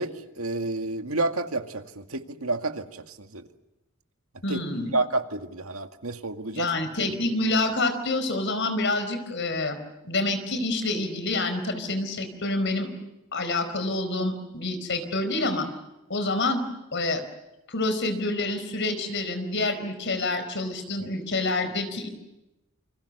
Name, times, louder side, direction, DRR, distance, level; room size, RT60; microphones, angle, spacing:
voice 1, 0.0-3.4 4.5-4.6 4.9-6.7, right 2 dB, 80° right, 6 dB, 2.1 m, -30 dB
voice 2, 4.4-5.0 6.5-12.9 13.3-15.7 16.1-16.6 16.9-17.2 17.7-22.1, left 2 dB, 60° left, 9 dB, 4.7 m, -27 dB
28.5 x 25.5 x 6.8 m, 0.96 s
head